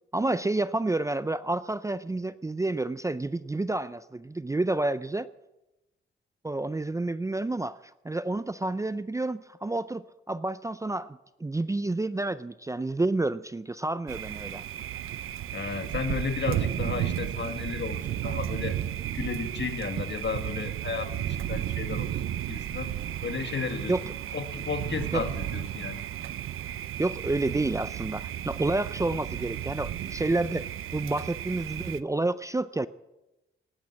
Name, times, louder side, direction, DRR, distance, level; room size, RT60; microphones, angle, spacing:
voice 1, 0.1-5.3 6.4-7.8 8.0-14.6 23.9-24.0 25.1-25.3 27.0-30.6 30.9-32.9, right 2 dB, 15° right, 15 dB, 0.5 m, -29 dB
Thunder, 14.1-32.0, right 11 dB, 80° right, 0.6 m, -33 dB
voice 2, 15.5-18.8 19.1-22.1 22.5-22.9 23.2-24.0 24.3-26.0, left 5 dB, 60° left, 7 dB, 2.0 m, -33 dB
19.0 x 8.7 x 8.2 m, 0.98 s
cardioid pair, 80°, 21 cm